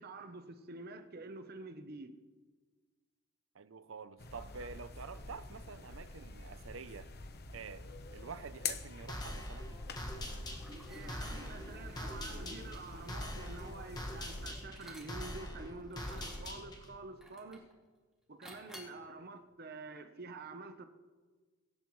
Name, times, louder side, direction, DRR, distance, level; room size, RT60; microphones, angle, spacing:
voice 1, 0.0-2.1 10.9-17.6 18.3-20.8, right 3 dB, 50° right, 1.0 m, -48 dB
voice 2, 3.5-7.1 7.5-9.7, right 5 dB, 75° right, 0.6 m, -48 dB
sound 1, 4.2-14.5, left 4 dB, 50° left, 1.0 m, -46 dB
sound 2, 9.1-17.0, left 1 dB, 20° left, 1.8 m, -43 dB
Liquid, 10.4-15.4 15.9-16.6 17.2-17.7 18.4-19.0, equal, ahead, 2.8 m, -54 dB
23.0 x 11.0 x 3.2 m
head